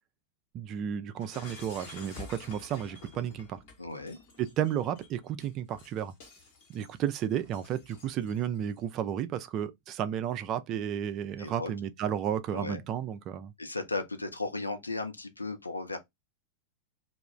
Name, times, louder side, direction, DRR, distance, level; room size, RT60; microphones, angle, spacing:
voice 1, 0.5-3.6 4.4-6.1 6.7-13.5, right 9 dB, 35° right, 0.3 m, -32 dB
Shatter, 1.2-8.6, left 4 dB, 50° left, 1.0 m, -50 dB
voice 2, 3.8-4.2 11.4-11.7 12.5-12.8 13.6-16.0, left 3 dB, 80° left, 0.5 m, -35 dB
2.3 x 2.0 x 3.1 m
figure-of-eight pair, 90°, 0 cm